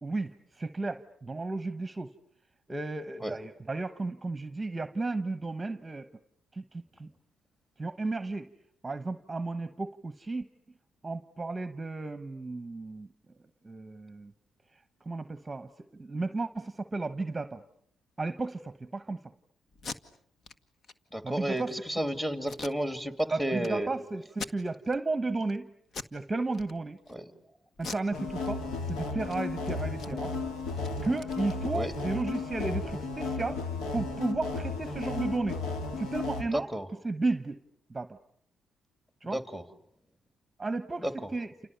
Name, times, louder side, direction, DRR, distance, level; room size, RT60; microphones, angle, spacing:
voice 1, 0.0-2.1 2.7-6.1 6.5-7.1 7.8-8.5 8.8-10.4 11.0-13.1 13.6-14.3 15.0-17.6 18.2-19.2 21.2-21.7 23.3-25.7 26.1-27.0 27.8-30.3 31.0-33.6 33.9-35.6 36.0-36.7 37.0-37.6 37.9-38.2 39.2-39.4 40.6-41.5, right 3 dB, 20° right, 12 dB, 1.1 m, -33 dB
Packing tape duct tape, 19.7-20.0 20.4-20.6 20.8-20.9 21.4-21.8 22.4-23.2 23.6-23.7 24.3-25.0 25.4-25.6 25.9-26.2 26.5-27.1 27.8-28.9 29.2-29.4 29.6-32.3, left 4 dB, 55° left, 1.7 m, -43 dB
voice 2, 21.1-23.9 27.1-27.2 31.7-31.9 36.5-36.9 39.3-39.6 41.0-41.3, right 1 dB, 10° left, 10 dB, 2.7 m, -32 dB
sound 1, 28.1-36.4, left 3 dB, 85° left, 3.1 m, -34 dB
29.5 x 29.0 x 6.9 m, 0.66 s
cardioid pair, 95°, 0 cm